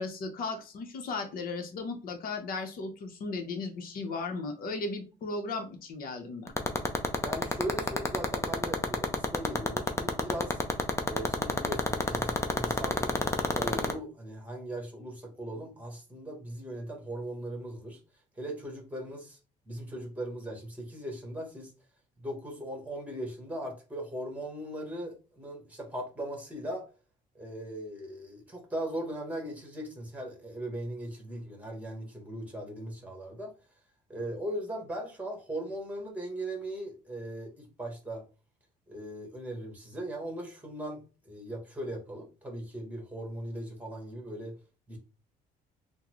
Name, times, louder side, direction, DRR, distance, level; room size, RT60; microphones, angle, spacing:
voice 1, 0.0-6.5, left 3 dB, 60° left, 5 dB, 0.9 m, -36 dB
sound 1, 6.5-13.9, left 3 dB, 15° left, 0.5 m, -25 dB
voice 2, 7.2-10.6 11.1-13.1 13.5-18.0 18.3-19.4 19.7-21.7 22.2-26.9 27.3-33.5 34.1-38.2 38.9-44.6 44.9-45.0, right 1 dB, 10° right, 2 dB, 1.3 m, -39 dB
3.7 x 2.2 x 3.1 m, 0.33 s
cardioid pair, 110°, 17 cm